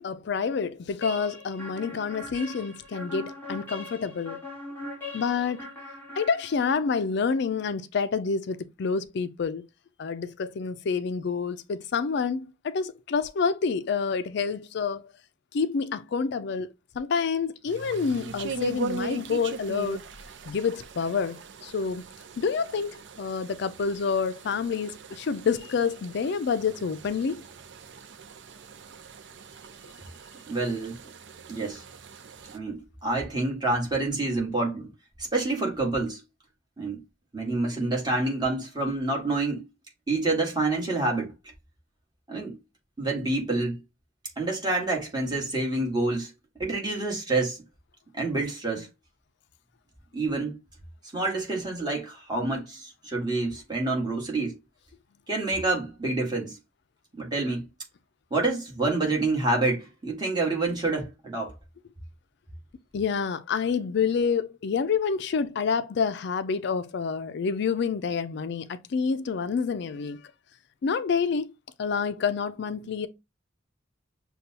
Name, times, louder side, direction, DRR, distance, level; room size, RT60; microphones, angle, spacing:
voice 1, 0.0-4.4 5.1-5.7 6.2-9.6 10.0-15.0 15.5-20.0 20.5-22.0 22.4-27.4 62.9-70.2 70.8-71.5 71.8-73.1, left 5 dB, 65° left, 0.4 m, -28 dB
sound 1, 1.0-6.9, left 2 dB, 10° left, 1.4 m, -40 dB
sound 2, 17.7-32.6, right 3 dB, 70° right, 0.5 m, -40 dB
voice 2, 30.5-31.0 31.5-31.8 32.5-34.9 35.2-36.2 36.8-37.0 37.3-39.7 40.1-41.3 42.3-42.6 43.0-43.8 44.4-46.3 46.6-47.6 48.1-48.9 50.1-50.5 51.1-54.6 55.3-56.6 57.2-57.7 58.3-61.5, right 2 dB, 25° right, 1.6 m, -27 dB
6.6 x 2.3 x 2.8 m
head